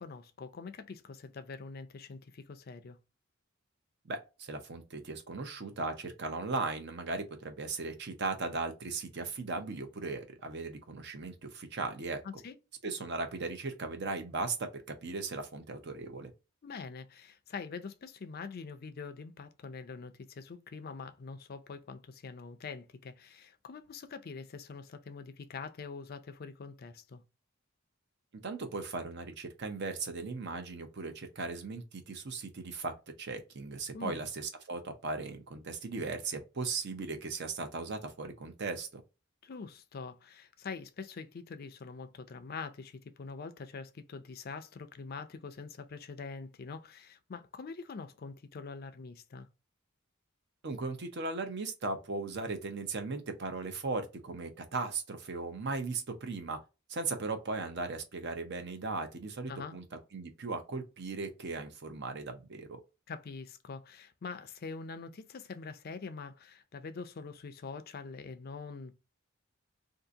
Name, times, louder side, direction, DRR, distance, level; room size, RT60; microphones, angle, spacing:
voice 1, 0.0-3.0 12.2-12.6 16.6-27.2 33.9-34.2 39.4-49.5 59.5-59.8 63.1-68.9, left 4 dB, 50° left, 0.4 m, -44 dB
voice 2, 4.0-12.4 12.8-16.3 28.4-39.0 50.6-56.6 56.9-59.8 60.1-62.8, right 3 dB, 55° right, 0.7 m, -37 dB
2.7 x 2.5 x 3.6 m
head